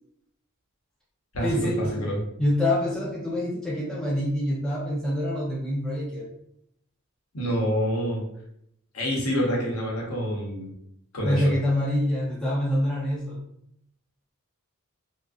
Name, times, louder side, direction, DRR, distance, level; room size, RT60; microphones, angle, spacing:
voice 1, 1.4-2.0 2.4-6.3 11.2-13.4, left 1 dB, 5° left, -6 dB, 0.5 m, -26 dB
voice 2, 7.3-8.3 8.9-10.7 11.1-11.5, equal, 70° left, -3 dB, 0.8 m, -27 dB
2.4 x 2.2 x 2.4 m, 0.74 s
head